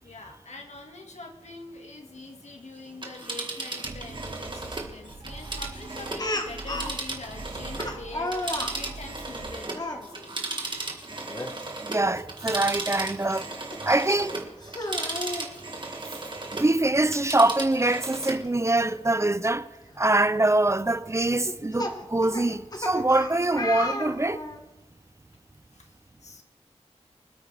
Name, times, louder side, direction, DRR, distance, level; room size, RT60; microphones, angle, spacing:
voice 1, 0.0-10.3 25.7-25.9 26.2-26.4, left 2 dB, 75° left, 1.9 m, -44 dB
Telephone, 2.9-8.0 8.3-16.7 17.0-18.4 18.8-18.9, right 2 dB, 40° right, 1.8 m, -36 dB
sound 1, 3.8-9.9, right 2 dB, 70° right, 2.0 m, -43 dB
Speech, 6.2-7.0 7.8-8.8 9.7-10.0 11.3-11.5 11.9-12.0 13.7-13.8 14.6-15.5 16.8-16.9 17.2-17.3 19.2-19.3 19.9-20.2 21.3-24.6, left 1 dB, 35° left, 1.4 m, -33 dB
voice 2, 11.8-13.5 13.8-14.4 16.6-19.7 20.0-24.4, right 2 dB, 25° right, 0.5 m, -24 dB
25.0 x 8.8 x 3.4 m
wide cardioid pair, 85°, 12 cm